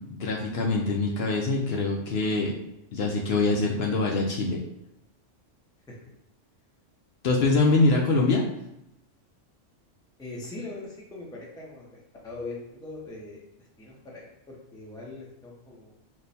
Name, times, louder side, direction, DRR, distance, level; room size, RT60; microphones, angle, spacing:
voice 1, 0.1-2.5 2.9-4.6 7.2-8.4, left 3 dB, 65° left, -1 dB, 0.7 m, -24 dB
voice 2, 10.2-15.9, left 2 dB, 5° left, -3 dB, 0.4 m, -41 dB
3.1 x 2.2 x 3.9 m, 0.85 s
omnidirectional pair, 1.3 m